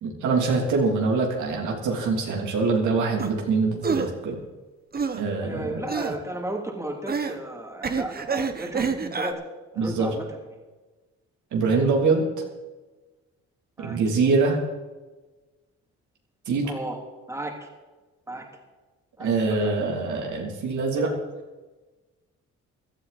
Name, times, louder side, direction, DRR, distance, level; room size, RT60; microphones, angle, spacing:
voice 1, 0.0-4.4 5.1-5.8 9.8-10.1 11.5-12.2 13.8-14.6 16.5-16.7 19.2-21.1, right 4 dB, 75° right, 0 dB, 3.2 m, -24 dB
sound 1, 3.2-3.3 3.8-4.1 4.9-5.2 5.9-6.2 7.1-7.4 7.8-9.3, right 5 dB, 30° right, 1.2 m, -27 dB
voice 2, 5.4-9.4 9.7-10.2 13.8-14.0 16.6-17.0 17.3-17.7 18.3-18.4 19.2-19.3 19.6-19.7, right 1 dB, 10° right, 0 dB, 3.0 m, -34 dB
16.5 x 12.5 x 4.3 m, 1.2 s
cardioid pair, 90°, 30 cm